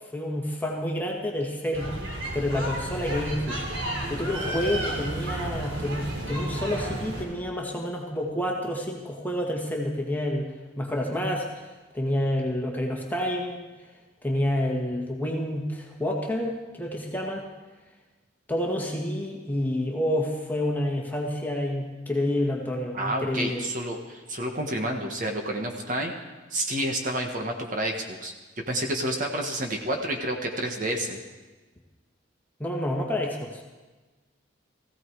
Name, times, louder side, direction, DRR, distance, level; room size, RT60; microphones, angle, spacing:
voice 1, 0.1-1.9 2.3-3.6 4.1-11.6 11.9-13.7 14.2-17.5 18.5-23.6 32.6-33.7, left 1 dB, 10° left, -1 dB, 1.8 m, -29 dB
sound 1, 1.7-7.2, right 1 dB, 70° right, 3.9 m, -32 dB
voice 2, 22.9-26.1 26.5-27.9 28.2-28.3 28.7-31.2, right 1 dB, 40° right, 2 dB, 1.5 m, -29 dB
18.5 x 15.5 x 4.8 m, 1.2 s
head